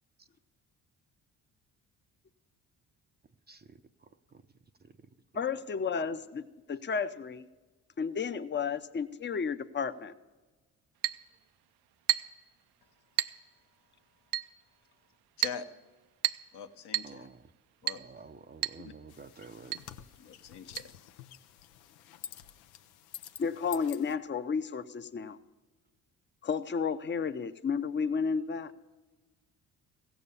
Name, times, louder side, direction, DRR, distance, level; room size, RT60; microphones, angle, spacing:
voice 1, 3.5-4.4 4.8-4.9 17.0-17.5 17.9-19.8, right 4 dB, 25° right, 9 dB, 0.6 m, -51 dB
voice 2, 5.3-6.4 6.7-7.4 8.0-10.1 23.4-25.4 26.4-28.7, left 6 dB, 25° left, 12 dB, 0.6 m, -32 dB
Chink clink, 11.0-11.3 12.1-12.4 13.2-13.4 14.3-14.5 15.4-15.7 16.2-16.5 16.9-17.2 17.9-18.1 18.6-18.8 19.1-19.2 19.7-19.9 20.8-20.9, right 13 dB, 60° right, 0.6 m, -31 dB
voice 3, 16.5-17.3 17.8-18.0 18.8-18.9 20.2-20.9, left 7 dB, 60° left, 7 dB, 1.0 m, -43 dB
sound 1, 19.1-24.2, left 10 dB, 90° left, 0.6 m, -49 dB
16.0 x 7.2 x 7.0 m, 1.2 s
hypercardioid pair, 55°, 44 cm